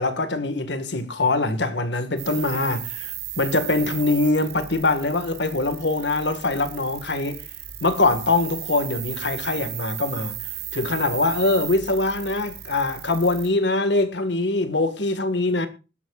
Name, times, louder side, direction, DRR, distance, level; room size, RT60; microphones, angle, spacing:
voice 1, 0.0-7.4 7.8-10.4 10.7-15.7, left 2 dB, 80° left, 1.7 m, -23 dB
sound 1, 2.2-13.5, right 12 dB, 65° right, 3.5 m, -35 dB
20.5 x 11.5 x 2.4 m
head